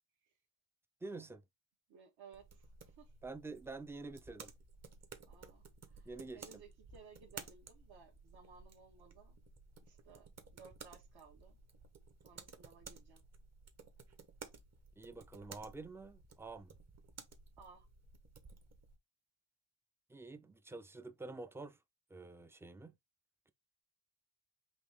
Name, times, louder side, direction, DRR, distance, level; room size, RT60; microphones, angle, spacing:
voice 1, 1.0-1.4 3.2-4.5 6.0-6.5 15.0-16.7 20.1-21.8 22.1-23.0, right 3 dB, 5° right, 0.4 m, -48 dB
voice 2, 1.9-3.1 5.3-9.4 9.8-11.6 12.2-13.2 17.6-17.9, right 6 dB, 65° right, 1.4 m, -60 dB
sound 1, 2.3-19.0, right 4 dB, 40° right, 1.0 m, -56 dB
4.0 x 2.7 x 3.4 m
cardioid pair, 75°, 42 cm